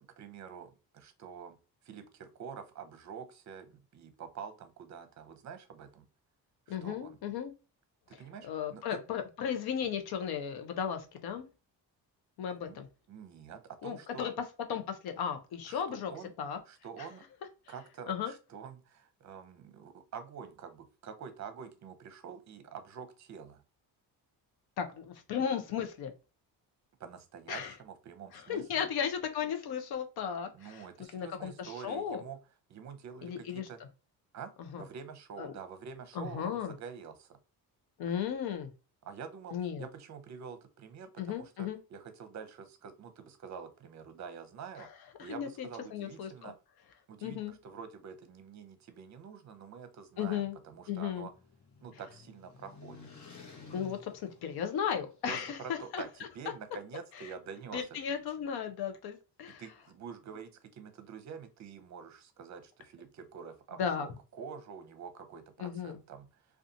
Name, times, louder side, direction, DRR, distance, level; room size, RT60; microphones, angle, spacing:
voice 1, 0.2-1.6 1.8-6.1 6.7-7.2 8.1-9.0 12.5-12.8 13.1-14.3 15.6-16.3 16.7-17.2 17.7-23.6 27.0-28.9 30.5-32.4 32.7-33.8 34.3-34.5 34.8-37.4 39.0-44.9 45.2-46.5 47.1-51.3 51.8-53.0 55.3-57.9 59.6-66.5, right 6 dB, 45° right, 0.7 m, -47 dB
voice 2, 6.7-7.5 8.4-11.5 12.4-12.9 13.8-14.3 14.7-16.1 16.4-16.6 17.0-17.1 18.1-18.3 24.8-26.1 27.5-27.7 28.3-30.9 31.1-32.2 33.2-33.7 34.6-34.8 35.4-35.5 36.1-36.7 38.0-38.7 39.5-39.9 41.2-41.8 44.8-44.9 45.2-46.5 47.2-47.5 50.2-50.6 50.9-51.3 53.7-56.0 57.2-57.3 57.7-59.6 63.8-64.1 65.6-66.0, left 8 dB, 70° left, 0.7 m, -35 dB
sound 1, 50.6-55.3, left 4 dB, 45° left, 1.0 m, -53 dB
2.5 x 2.4 x 2.6 m
cardioid pair, 80°, 39 cm